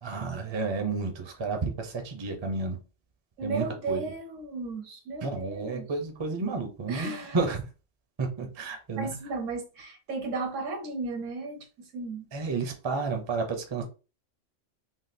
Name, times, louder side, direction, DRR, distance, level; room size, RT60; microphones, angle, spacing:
voice 1, 0.0-2.8 3.4-4.1 5.2-7.7 8.2-9.1 12.3-13.8, right 4 dB, 35° right, 0.4 m, -31 dB
voice 2, 3.4-5.9 6.9-7.4 9.0-12.3, right 3 dB, 75° right, 1.1 m, -35 dB
3.6 x 2.3 x 2.6 m
omnidirectional pair, 1.3 m